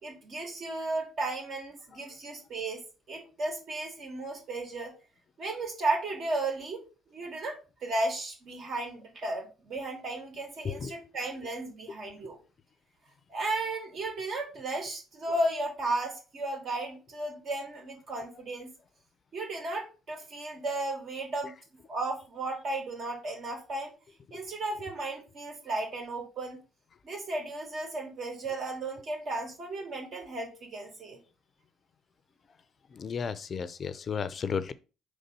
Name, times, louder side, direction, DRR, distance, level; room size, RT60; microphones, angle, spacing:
voice 1, 0.0-2.8 3.1-4.9 5.4-6.9 7.1-12.4 13.3-18.7 19.3-21.5 21.9-23.9 24.3-26.6 27.0-31.2, right 2 dB, 60° right, 2.8 m, -34 dB
voice 2, 32.9-34.7, left 6 dB, 45° left, 0.5 m, -33 dB
4.9 x 4.0 x 5.4 m
supercardioid pair, 65°, 0 cm